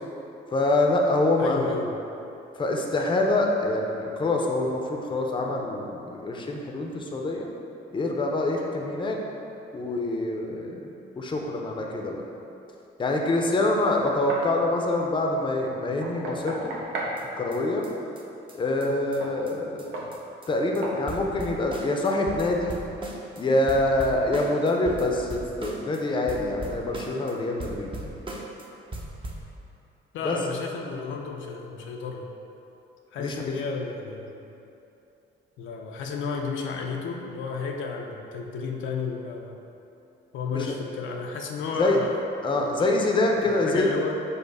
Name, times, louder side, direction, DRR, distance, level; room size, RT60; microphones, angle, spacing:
voice 1, 0.5-1.8 2.6-7.5 7.9-9.2 9.7-10.9 11.2-12.2 13.0-16.7 17.4-17.8 18.5-19.9 20.5-22.7 23.4-28.1 30.2-30.4 33.2-33.5 40.5-40.7 41.8-42.0 42.4-43.9, left 2 dB, 25° left, 1 dB, 0.5 m, -25 dB
voice 2, 1.4-2.0 30.1-32.3 33.1-34.4 35.6-39.6 40.3-42.2 42.6-42.9 43.4-44.2, left 5 dB, 75° left, 1 dB, 0.5 m, -32 dB
Knock, 13.4-14.5 16.0-17.2 19.2-19.4 19.9-20.2 20.8-21.0, right 2 dB, 80° right, 0.7 m, -34 dB
sound 1, 17.2-17.3 17.5-17.6 17.8-17.9 18.2-18.3 18.5-18.6 18.8-18.9 19.1-19.2 19.5-19.6 19.8-19.9 20.1-20.5 20.7-20.8 21.1-23.4 23.7-26.0 26.3-27.3 27.6-28.6 28.9-29.5, right 1 dB, 25° right, 0.6 m, -38 dB
5.3 x 2.1 x 4.7 m, 2.8 s
cardioid pair, 90°, 20 cm